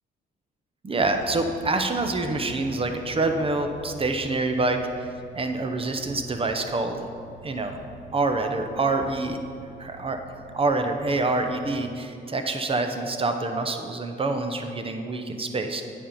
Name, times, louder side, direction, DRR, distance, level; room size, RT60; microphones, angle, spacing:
voice 1, 0.8-5.1 5.3-7.1 7.4-7.8 8.1-9.4 9.8-10.2 10.5-15.8, right 2 dB, 30° right, 6 dB, 0.8 m, -26 dB
sound 1, 1.0-11.8, right 1 dB, 35° left, 0.7 m, -47 dB
8.5 x 5.2 x 5.5 m, 2.5 s
cardioid pair, 90°, 20 cm